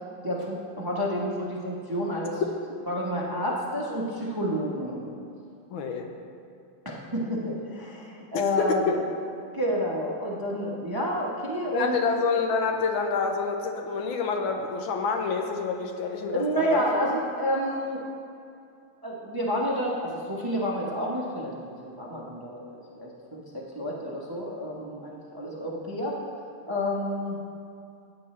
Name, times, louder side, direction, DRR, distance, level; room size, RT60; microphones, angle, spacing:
voice 1, 0.2-2.4 2.9-5.0 6.8-8.9 9.5-12.0 16.3-18.0 19.0-26.2 26.7-27.4, equal, 20° right, -3 dB, 0.7 m, -29 dB
voice 2, 5.7-6.1 8.6-9.0 11.7-17.1, left 4 dB, 80° left, 4 dB, 1.6 m, -27 dB
16.0 x 8.8 x 3.2 m, 2.5 s
omnidirectional pair, 2.2 m